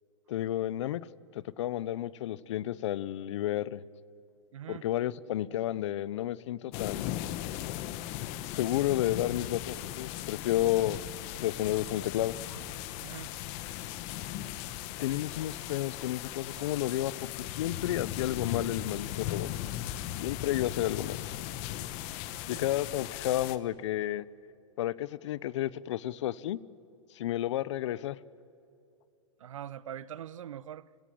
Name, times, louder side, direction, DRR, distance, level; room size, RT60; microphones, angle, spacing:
voice 1, 0.3-1.0 1.3-3.8 4.7-7.3 8.5-11.0 11.4-12.4 15.0-19.5 20.1-21.2 22.5-24.2 24.8-26.6 27.2-28.2, left 13 dB, 65° left, 20 dB, 0.7 m, -31 dB
voice 2, 4.5-4.8 13.0-13.3 22.5-22.7 29.4-30.9, right 10 dB, 90° right, 19 dB, 0.7 m, -42 dB
sound 1, 6.7-23.6, left 13 dB, 40° left, 1.0 m, -38 dB
sound 2, 11.8-12.0 12.4-12.6 13.1-13.3 13.6-13.8 14.1-14.3 14.6-14.7 15.0-15.2 15.6-15.7 16.4-16.6 17.3-17.5 18.2-18.3 19.2-19.4 19.9-20.1 20.6-20.8, left 3 dB, 85° left, 6.0 m, -51 dB
30.0 x 17.5 x 7.6 m, 2.7 s
hypercardioid pair, 140°, 16 cm